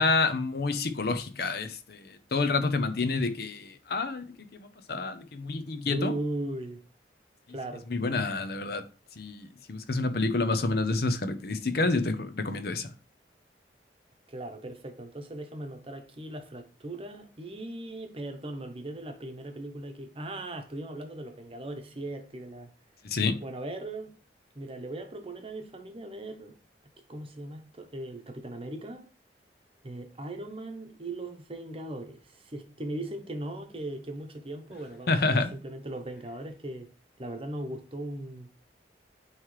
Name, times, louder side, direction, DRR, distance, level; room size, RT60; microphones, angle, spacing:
voice 1, 0.0-6.1 7.9-8.8 9.2-12.9 23.0-23.4 35.1-35.5, left 3 dB, 60° left, 0.7 m, -28 dB
voice 2, 5.9-6.8 7.5-7.9 14.3-22.7 23.4-24.2 24.5-26.6 27.1-29.1 29.8-36.9 37.2-38.5, right 1 dB, 30° right, 0.9 m, -38 dB
9.3 x 3.2 x 3.2 m
head